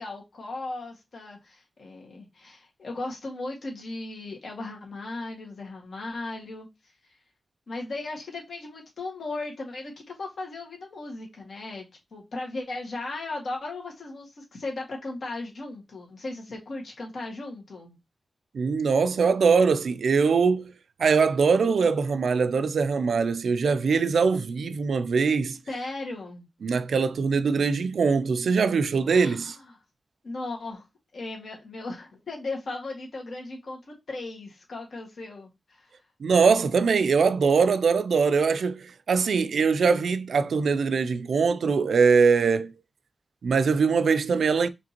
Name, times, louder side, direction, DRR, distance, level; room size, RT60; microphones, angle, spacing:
voice 1, 0.0-6.7 7.0-7.1 7.7-11.8 12.1-18.0 25.7-26.4 29.1-29.8 30.2-30.9 31.1-35.9, left 2 dB, 65° left, 1.7 m, -37 dB
voice 2, 18.5-20.7 21.0-25.6 26.6-29.5 36.2-42.7 43.4-44.7, right 5 dB, 90° right, 0.3 m, -22 dB
5.0 x 3.6 x 2.9 m
wide cardioid pair, 155°, 0 cm